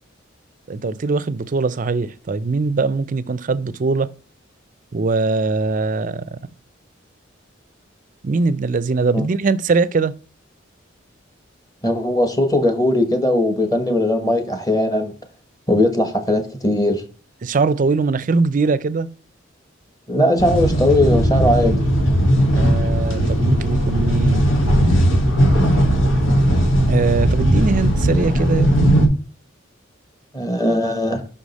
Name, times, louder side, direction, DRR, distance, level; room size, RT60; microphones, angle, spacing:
voice 1, 0.7-4.1 4.9-6.2 8.2-10.1 17.4-19.1 22.5-24.4 26.9-28.8, right 4 dB, 40° right, 0.4 m, -21 dB
voice 2, 11.8-15.1 15.7-17.0 20.1-21.8 30.3-31.2, left 1 dB, 20° left, 1.1 m, -19 dB
sound 1, 20.4-29.1, equal, 85° left, 1.6 m, -17 dB
5.7 x 4.9 x 4.0 m
head